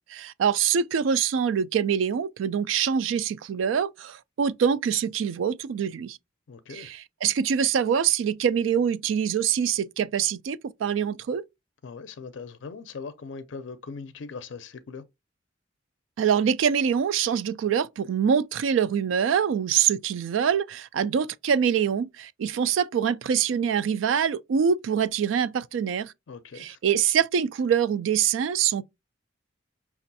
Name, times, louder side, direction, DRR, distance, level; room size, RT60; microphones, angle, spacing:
voice 1, 0.1-6.2 6.7-11.4 16.2-26.1 26.5-28.8, right 7 dB, 90° right, 0.3 m, -24 dB
voice 2, 6.5-6.9 11.8-15.0 26.3-26.8, left 4 dB, 75° left, 0.4 m, -40 dB
5.9 x 2.4 x 2.6 m
head